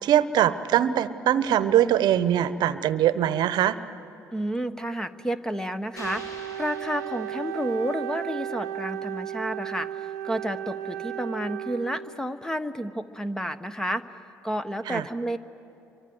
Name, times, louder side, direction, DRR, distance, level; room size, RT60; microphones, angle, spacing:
voice 1, 0.0-3.8 14.9-15.0, right 11 dB, 60° right, 14 dB, 1.0 m, -22 dB
voice 2, 4.3-14.0 14.4-15.4, equal, 5° left, 10 dB, 1.3 m, -31 dB
Wind instrument woodwind instrument, 5.9-12.3, right 12 dB, 85° right, 0.6 m, -35 dB
sound 1, 6.0-8.1, left 1 dB, 45° left, 5.0 m, -46 dB
30.0 x 24.0 x 8.0 m, 2.7 s
hypercardioid pair, 55°, 8 cm